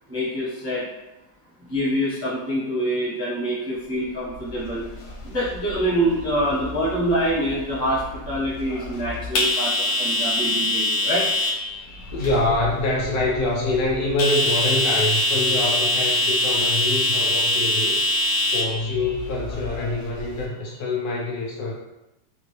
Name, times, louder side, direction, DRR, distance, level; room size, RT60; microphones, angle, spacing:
voice 1, 0.1-0.8 1.7-4.9 5.2-11.2, equal, 15° right, -8 dB, 0.5 m, -25 dB
sound 1, 4.3-20.4, left 1 dB, 85° left, 0.6 m, -25 dB
voice 2, 12.1-18.0 18.4-21.7, left 2 dB, 70° left, -3 dB, 0.9 m, -25 dB
2.9 x 2.5 x 3.1 m, 0.93 s
omnidirectional pair, 1.9 m